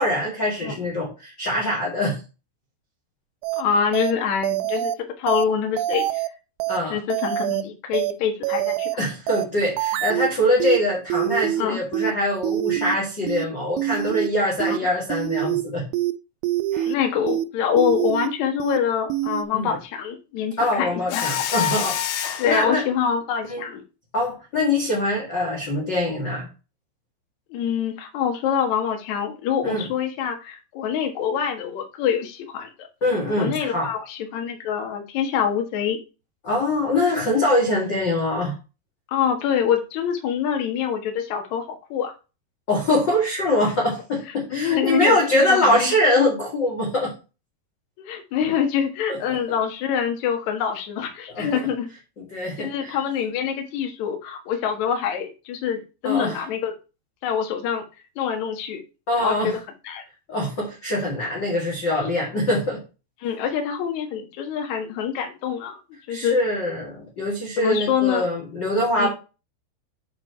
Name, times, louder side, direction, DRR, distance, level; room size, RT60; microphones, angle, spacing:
voice 1, 0.0-2.2 6.7-7.0 9.0-15.8 16.7-16.9 19.5-19.8 20.6-22.8 23.5-23.6 24.1-26.5 29.6-29.9 33.0-33.9 36.4-38.5 42.7-47.1 49.1-49.4 51.3-51.5 52.2-53.0 56.0-56.4 59.1-59.5 60.3-62.8 66.1-69.1, left 1 dB, 45° left, -2 dB, 1.4 m, -23 dB
sound 1, 3.4-3.6 3.9-4.1 4.4-5.0 5.3-5.5 5.8-6.3 6.6-6.8 7.1-7.6 7.9-8.1 8.4-9.0 9.3-9.5 9.8-10.3 10.6-10.8 11.1-11.6 11.9-12.1 12.4-13.0 13.3-13.5 13.8-14.3 14.6-14.8 15.1-15.6 15.9-16.1 16.4-17.0 17.3-17.5 17.8-18.3 18.6-18.8 19.1-19.4, right 13 dB, 90° right, 3.0 m, -25 dB
voice 2, 3.6-6.2 6.9-8.9 11.6-11.8 14.6-14.8 16.8-21.3 22.4-23.8 27.5-32.9 33.4-36.0 39.1-41.7 41.9-42.1 44.5-46.0 48.0-51.9 52.6-56.7 57.2-57.8 58.2-58.8 59.2-59.6 59.8-60.0 63.2-65.8 66.1-66.4 67.6-68.3 69.0-69.1, left 8 dB, 65° left, 4 dB, 1.9 m, -25 dB
Mechanisms, 21.1-22.6, left 11 dB, 85° left, 3.2 m, -26 dB
8.8 x 4.4 x 4.5 m, 0.30 s
omnidirectional pair, 5.3 m